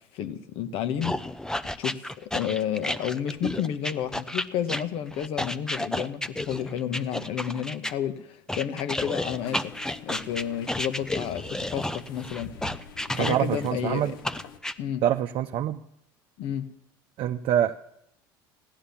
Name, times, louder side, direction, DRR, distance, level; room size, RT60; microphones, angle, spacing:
voice 1, 0.1-1.2 1.8-9.7 10.0-12.5 13.1-14.1 14.8-15.0 16.4-16.6, left 9 dB, 60° left, 10 dB, 1.4 m, -31 dB
sound 1, 1.0-7.9 8.5-13.7 14.2-14.7, left 1 dB, 5° left, 0.7 m, -31 dB
sound 2, 9.3-14.6, left 7 dB, 85° left, 1.3 m, -46 dB
voice 2, 13.1-14.1 15.0-15.8 17.2-17.8, right 10 dB, 55° right, 6 dB, 0.7 m, -25 dB
15.5 x 11.5 x 7.2 m, 0.77 s
hypercardioid pair, 80°, 11 cm